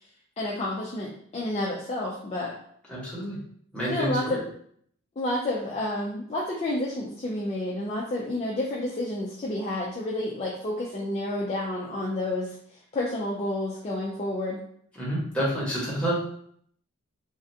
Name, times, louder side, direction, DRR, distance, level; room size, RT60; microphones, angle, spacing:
voice 1, 0.4-2.5 3.9-4.4 5.2-12.5 12.9-14.6, left 1 dB, 30° left, -5 dB, 0.4 m, -30 dB
voice 2, 2.9-3.4 3.7-4.4 15.0-16.1, equal, 5° left, -8 dB, 1.1 m, -28 dB
3.2 x 2.5 x 2.6 m, 0.64 s
head